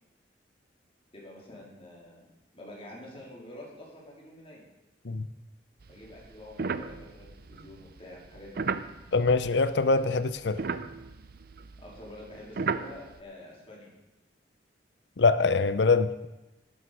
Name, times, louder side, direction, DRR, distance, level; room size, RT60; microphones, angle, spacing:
voice 1, 1.1-2.3 2.5-4.7 5.9-8.7 11.8-13.9, left 1 dB, 35° left, -4 dB, 3.7 m, -47 dB
sound 1, 5.8-10.0 10.3-13.2, right 4 dB, 60° right, 0.6 m, -36 dB
voice 2, 9.1-10.6 15.2-16.3, left 4 dB, 75° left, 13 dB, 0.7 m, -24 dB
11.5 x 11.0 x 4.9 m, 1.0 s
head